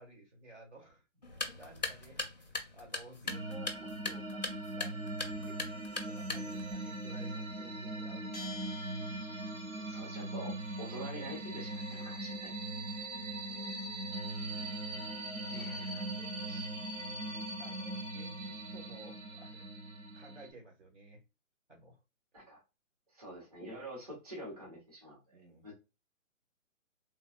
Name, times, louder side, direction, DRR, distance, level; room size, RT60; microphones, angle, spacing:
voice 1, 0.0-8.6 9.2-9.3 13.4-14.1 14.5-19.6 20.1-21.2 21.7-22.0 25.3-25.6, right 2 dB, 60° right, 2 dB, 1.3 m, -56 dB
sound 1, 1.2-6.7, left 3 dB, 35° left, 0.4 m, -41 dB
sound 2, 3.3-20.5, right 2 dB, 80° right, 1.2 m, -40 dB
Bell, 8.3-9.9, left 4 dB, 5° left, 0.8 m, -49 dB
voice 2, 9.8-12.5 15.5-16.0 16.5-16.7 22.3-22.6 23.1-25.7, right 1 dB, 30° right, -5 dB, 0.9 m, -47 dB
3.4 x 2.2 x 2.3 m, 0.27 s
hypercardioid pair, 175°, 40 cm